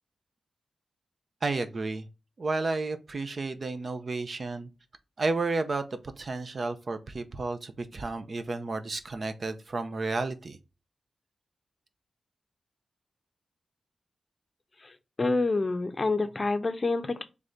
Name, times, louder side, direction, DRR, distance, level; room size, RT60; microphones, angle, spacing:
voice 1, 1.4-2.1 2.4-4.7 5.2-5.9 6.2-10.6, right 3 dB, 50° right, 0.6 m, -32 dB
voice 2, 15.2-17.3, left 3 dB, 35° left, 0.6 m, -27 dB
3.5 x 3.3 x 3.9 m
cardioid pair, 75°, 0 cm